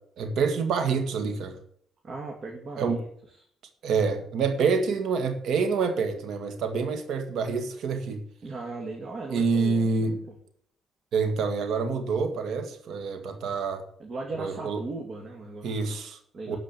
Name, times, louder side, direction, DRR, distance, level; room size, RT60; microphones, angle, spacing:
voice 1, 0.2-1.6 2.8-3.0 3.8-8.2 9.3-10.2 11.1-13.8 14.3-14.8 15.6-16.2 16.5-16.6, right 5 dB, 70° right, 2.0 m, -27 dB
voice 2, 2.0-3.1 8.4-10.4 14.0-15.7 16.3-16.6, right 3 dB, 45° right, 2.2 m, -37 dB
12.5 x 5.1 x 8.5 m
cardioid pair, 105°, 0 cm